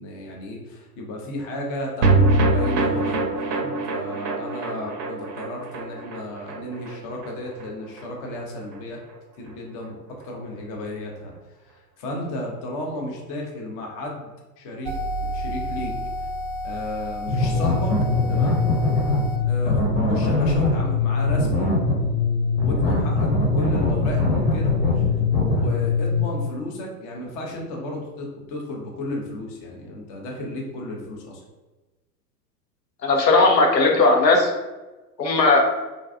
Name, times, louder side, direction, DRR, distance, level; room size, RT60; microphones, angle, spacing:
voice 1, 0.0-9.0 9.4-11.3 11.6-14.3 14.6-14.9 15.2-15.9 16.6-18.0 18.3-18.6 19.4-21.8 22.0-24.8 25.3-31.4, left 1 dB, 25° left, -1 dB, 0.4 m, -33 dB
sound 1, 2.0-8.4 8.7-8.8 9.1-9.2, right 2 dB, 80° right, 0.6 m, -24 dB
sound 2, 14.8-19.4, equal, 35° right, 0.4 m, -31 dB
sound 3, 17.3-26.2, left 3 dB, 75° left, 1.1 m, -21 dB
voice 2, 33.0-34.5 35.2-35.6, left 3 dB, 90° left, 1 dB, 0.6 m, -17 dB
2.4 x 2.2 x 2.4 m, 1.1 s
figure-of-eight pair, 100°, 49 cm